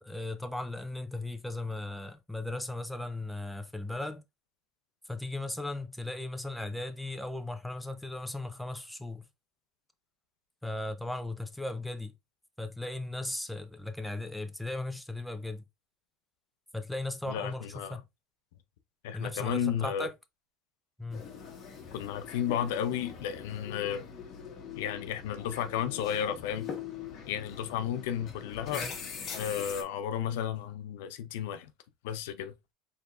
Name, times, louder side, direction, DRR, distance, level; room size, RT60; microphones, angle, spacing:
voice 1, 0.0-4.2 5.1-9.3 10.6-12.1 12.6-15.6 16.7-18.0 19.1-20.2 21.0-21.3 28.7-29.0, left 2 dB, ahead, 0.4 m, -37 dB
voice 2, 17.3-18.0 19.0-20.1 21.9-24.1 24.8-26.7 27.3-28.9 29.3-31.7 32.0-32.5, left 9 dB, 85° left, 0.6 m, -33 dB
sound 1, 21.1-29.8, left 7 dB, 35° left, 1.1 m, -43 dB
4.8 x 3.4 x 2.5 m
cardioid pair, 160°, 0 cm